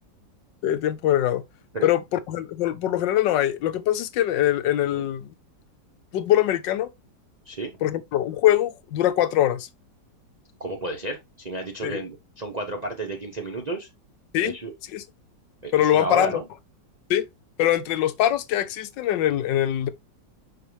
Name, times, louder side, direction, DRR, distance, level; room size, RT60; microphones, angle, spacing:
voice 1, 0.6-1.4 1.8-2.0 2.3-5.3 6.1-6.9 7.8-9.7 11.8-12.0 14.3-14.5 14.9-15.0 15.7-16.4 17.1-17.3 17.6-19.9, left 12 dB, 80° left, 1.4 m, -22 dB
voice 2, 10.6-13.9 14.4-14.7 15.6-16.5, right 2 dB, 35° right, 0.6 m, -32 dB
6.7 x 4.5 x 3.1 m
omnidirectional pair, 2.0 m